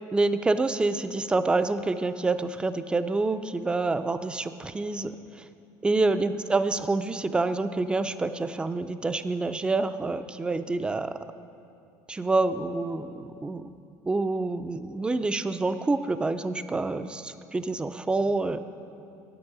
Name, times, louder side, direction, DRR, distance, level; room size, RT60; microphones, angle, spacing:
voice 1, 0.1-5.1 5.8-11.2 12.1-13.7 14.1-18.6, right 3 dB, 10° right, 11 dB, 0.3 m, -27 dB
8.9 x 8.7 x 4.8 m, 2.6 s
cardioid pair, 120°, 9 cm